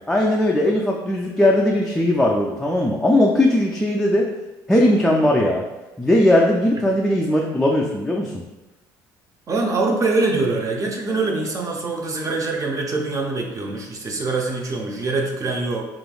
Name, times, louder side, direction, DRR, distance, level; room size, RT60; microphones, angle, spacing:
voice 1, 0.1-4.3 4.7-5.6 6.0-8.4, left 1 dB, 5° left, -2 dB, 0.4 m, -18 dB
voice 2, 9.5-15.9, right 3 dB, 35° right, 1 dB, 0.6 m, -24 dB
3.1 x 2.4 x 2.3 m, 1.1 s
supercardioid pair, 70°, 9 cm